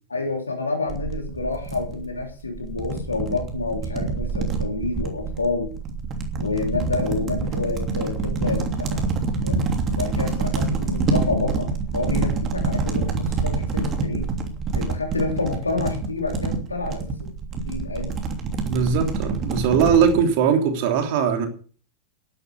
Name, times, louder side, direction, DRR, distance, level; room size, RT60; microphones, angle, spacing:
voice 1, 0.1-5.7 6.4-9.1 9.4-9.7 9.9-11.7 11.9-14.3 14.7-17.0 17.7-18.2, left 3 dB, 80° left, 3.4 m, -28 dB
sound 1, 0.9-20.2, right 4 dB, 30° right, 3.0 m, -27 dB
voice 2, 18.7-21.5, right 7 dB, 50° right, 3.4 m, -20 dB
11.5 x 11.5 x 6.6 m
figure-of-eight pair, 90°, 0 cm